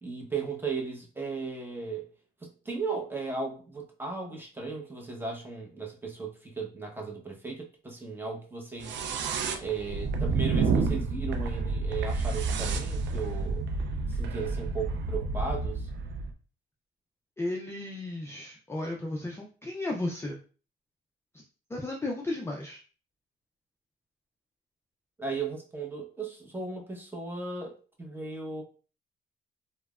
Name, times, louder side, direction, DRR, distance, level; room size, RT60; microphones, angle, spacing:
voice 1, 0.0-2.1 2.4-9.0 9.6-13.7 14.1-15.9 25.2-28.6, right 4 dB, 10° right, 0 dB, 0.8 m, -36 dB
sound 1, 8.8-16.3, right 4 dB, 65° right, 0.4 m, -30 dB
voice 2, 17.4-20.4 21.3-21.4 21.7-22.8, left 2 dB, 15° left, -1 dB, 0.4 m, -34 dB
3.1 x 2.1 x 2.3 m, 0.37 s
cardioid pair, 90°, 20 cm